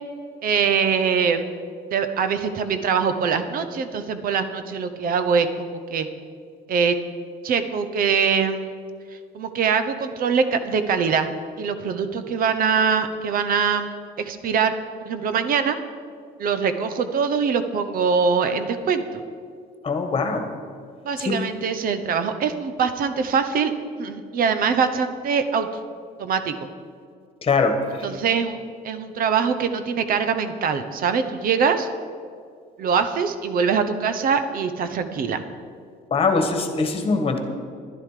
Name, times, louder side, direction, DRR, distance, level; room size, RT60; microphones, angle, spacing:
voice 1, 0.4-1.5 1.9-6.1 6.7-7.0 7.4-8.8 9.3-11.3 11.6-14.7 15.0-15.8 16.4-19.0 21.0-23.7 24.0-25.7 26.2-26.5 28.0-31.9 32.8-35.4, right 6 dB, 60° right, 9 dB, 0.9 m, -23 dB
voice 2, 19.8-20.4 21.2-21.4 27.4-28.1 36.1-37.4, left 4 dB, 35° left, 5 dB, 1.6 m, -22 dB
11.5 x 11.0 x 5.0 m, 2.2 s
cardioid pair, 110°, 17 cm